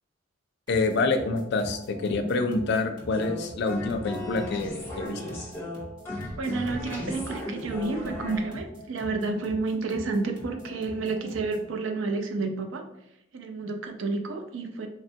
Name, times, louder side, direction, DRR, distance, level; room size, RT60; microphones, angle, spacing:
voice 1, 0.7-5.2, left 3 dB, 60° left, 7 dB, 0.4 m, -27 dB
sound 1, 0.7-11.7, equal, 25° right, 0.7 m, -45 dB
sound 2, 3.1-8.4, left 1 dB, 10° left, 0.6 m, -36 dB
voice 2, 6.4-12.9 13.3-14.9, right 3 dB, 80° right, 6 dB, 0.4 m, -30 dB
3.4 x 2.2 x 2.7 m, 0.81 s
head